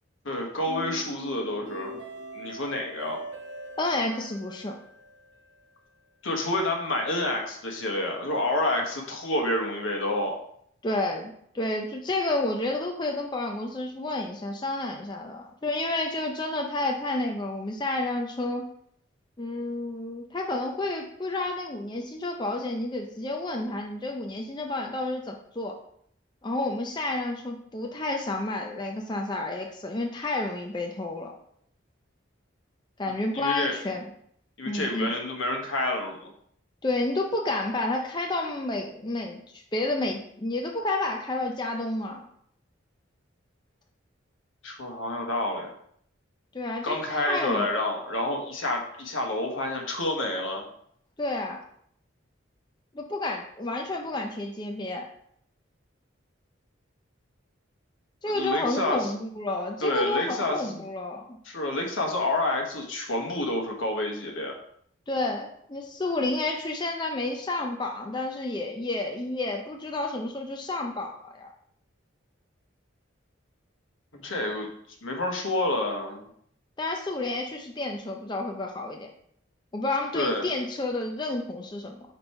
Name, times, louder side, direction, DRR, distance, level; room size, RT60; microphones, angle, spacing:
voice 1, 0.2-2.0 2.3-3.2 6.2-10.4 33.3-33.7 34.6-36.3 44.6-45.7 46.8-50.6 58.3-59.1 59.8-60.8 61.4-64.5 74.1-74.7 75.0-76.3 80.1-80.5, left 1 dB, 80° left, 2 dB, 1.3 m, -28 dB
sound 1, 0.7-5.7, right 2 dB, 75° right, 1.3 m, -42 dB
voice 2, 3.8-4.7 10.8-18.7 19.4-25.8 26.4-31.3 33.0-34.1 34.7-35.1 36.8-42.3 46.5-47.7 51.2-51.6 52.9-55.0 58.2-61.4 65.1-71.5 76.8-79.1 79.7-82.0, left 2 dB, 20° left, 2 dB, 0.5 m, -30 dB
5.3 x 4.4 x 4.3 m, 0.67 s
head